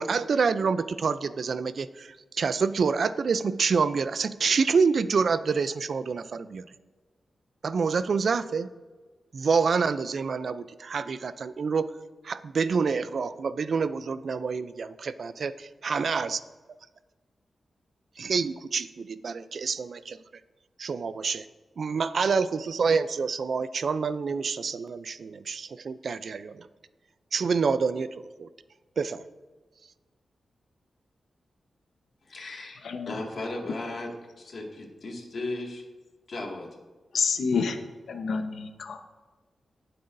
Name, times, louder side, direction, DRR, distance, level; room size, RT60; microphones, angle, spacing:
voice 1, 0.0-6.6 7.6-8.7 9.3-11.9 12.2-16.4 18.2-20.2 20.8-21.5 21.8-26.7 27.3-28.1 28.4-28.5 29.0-29.2, right 5 dB, 55° right, 14 dB, 0.4 m, -27 dB
voice 2, 32.3-35.8 36.3-36.7, left 2 dB, 55° left, 0 dB, 2.1 m, -36 dB
voice 3, 32.8-33.2 37.1-37.8 38.1-39.0, left 5 dB, 75° left, 6 dB, 1.0 m, -28 dB
18.0 x 7.7 x 2.7 m, 1.3 s
wide cardioid pair, 130°, 0 cm